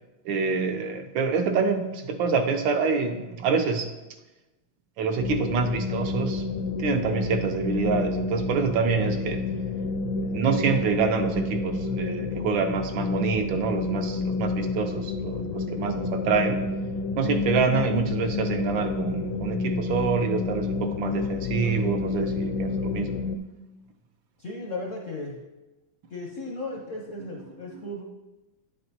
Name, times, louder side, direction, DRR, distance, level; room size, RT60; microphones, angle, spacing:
voice 1, 0.2-3.9 5.0-6.4 6.8-9.4 10.3-16.6 17.2-23.2 26.7-26.8 27.7-27.9, right 5 dB, 70° right, 6 dB, 1.3 m, -26 dB
sound 1, 5.2-23.4, left 3 dB, 75° left, 1.2 m, -29 dB
voice 2, 24.4-25.4 26.1-28.0, left 2 dB, 60° left, -1 dB, 0.8 m, -35 dB
9.8 x 7.7 x 2.8 m, 1.1 s
omnidirectional pair, 2.3 m